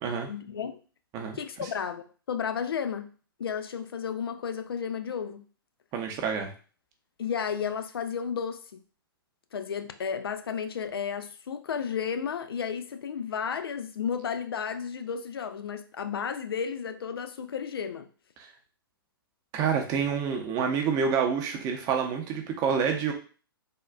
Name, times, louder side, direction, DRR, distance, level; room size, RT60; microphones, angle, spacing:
voice 1, 0.3-0.8 1.3-3.1 3.4-5.5 7.2-8.8 9.5-18.1, left 7 dB, 75° left, 9 dB, 0.4 m, -33 dB
voice 2, 5.9-6.5 18.4-18.5 19.5-23.1, right 6 dB, 30° right, 3 dB, 0.6 m, -28 dB
3.5 x 2.3 x 2.2 m, 0.38 s
hypercardioid pair, 115°, 12 cm